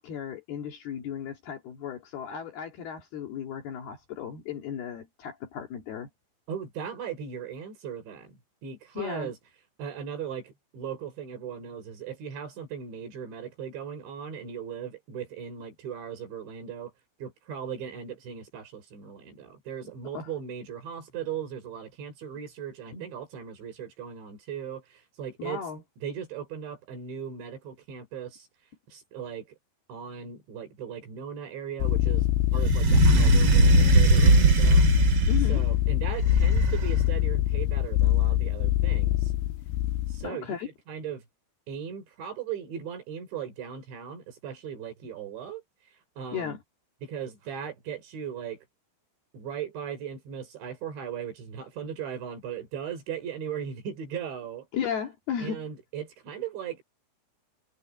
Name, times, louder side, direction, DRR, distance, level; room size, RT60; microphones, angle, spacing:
voice 1, 0.0-6.1 9.0-9.3 20.1-20.3 22.9-23.1 25.4-25.8 35.3-35.6 40.2-40.7 46.3-46.6 54.7-55.6, left 8 dB, 60° left, 4.0 m, -35 dB
voice 2, 6.5-9.4 9.8-16.9 17.2-25.6 26.0-28.5 28.9-29.6 29.9-34.9 35.5-39.3 40.1-41.2 41.7-45.6 46.2-46.6 47.0-48.6 49.3-54.7 55.4-56.8, right 8 dB, 80° right, 6.6 m, -38 dB
sound 1, 31.8-40.3, left 15 dB, 90° left, 3.1 m, -24 dB
sound 2, 32.6-35.6 36.2-37.1, right 5 dB, 40° right, 2.5 m, -21 dB
omnidirectional pair, 5.2 m